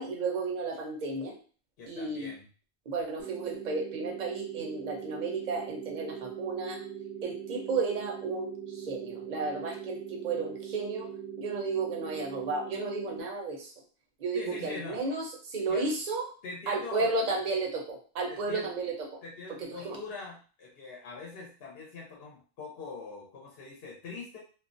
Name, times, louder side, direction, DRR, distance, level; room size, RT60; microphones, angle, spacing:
voice 1, 0.0-1.4 1.9-2.3 2.9-6.8 7.2-11.1 11.4-13.7 14.2-16.3 16.7-18.9 19.6-20.0, right 3 dB, 50° right, 0 dB, 0.7 m, -33 dB
voice 2, 1.8-2.5 14.3-15.0 15.7-15.9 16.4-17.2 18.3-18.7 19.2-24.4, left 4 dB, 65° left, -2 dB, 0.9 m, -42 dB
sound 1, 3.2-13.2, right 9 dB, 75° right, 0.9 m, -41 dB
2.3 x 2.1 x 2.5 m, 0.38 s
omnidirectional pair, 1.1 m